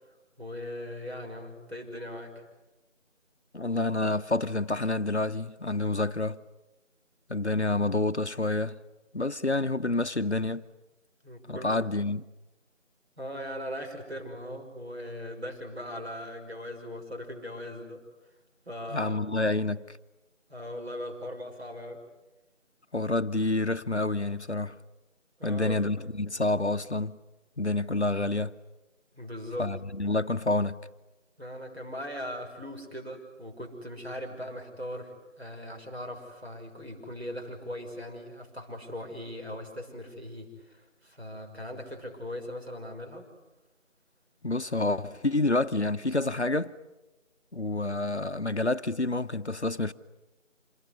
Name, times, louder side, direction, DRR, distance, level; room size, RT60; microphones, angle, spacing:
voice 1, 0.4-2.4 7.4-7.5 11.2-11.7 13.2-18.0 18.7-19.2 20.5-22.0 25.4-25.8 29.2-29.7 31.4-43.3, equal, 55° right, 6.1 m, -39 dB
voice 2, 3.5-6.4 7.3-8.8 9.1-10.6 11.5-12.2 18.9-19.9 22.9-24.8 25.4-27.2 27.6-28.6 29.6-30.8 44.4-46.7 47.5-49.9, left 2 dB, 60° left, 0.9 m, -28 dB
27.0 x 20.0 x 9.6 m
figure-of-eight pair, 180°, 38 cm